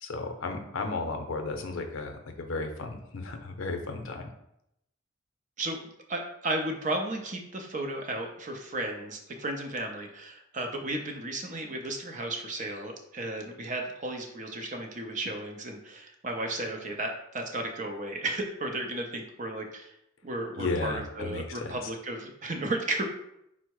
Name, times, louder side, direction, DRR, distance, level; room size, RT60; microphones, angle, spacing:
voice 1, 0.0-4.3 20.6-21.9, left 3 dB, 80° left, 5 dB, 0.6 m, -34 dB
voice 2, 6.1-19.9 20.2-23.1, right 2 dB, 40° right, 3 dB, 0.5 m, -34 dB
4.4 x 2.0 x 4.6 m, 0.80 s
head